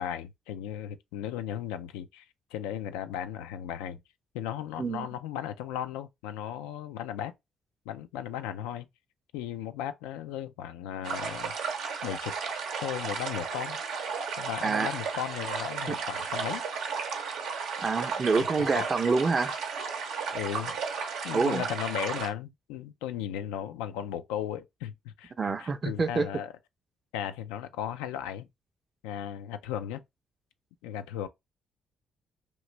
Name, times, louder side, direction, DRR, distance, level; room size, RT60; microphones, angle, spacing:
voice 1, 0.0-2.3 2.5-4.0 4.3-7.3 7.9-8.9 9.3-11.5 12.0-12.3 12.8-13.8 14.4-16.7 18.4-18.9 20.3-20.8 21.2-26.5 27.1-28.5 29.0-30.0 30.8-31.3, left 10 dB, 90° left, 0.3 m, -36 dB
sound 1, 11.0-22.3, right 5 dB, 80° right, 0.7 m, -34 dB
voice 2, 17.8-19.5 21.3-21.6 25.4-26.3, right 4 dB, 40° right, 0.6 m, -27 dB
3.0 x 2.5 x 3.1 m
supercardioid pair, 55°, 0 cm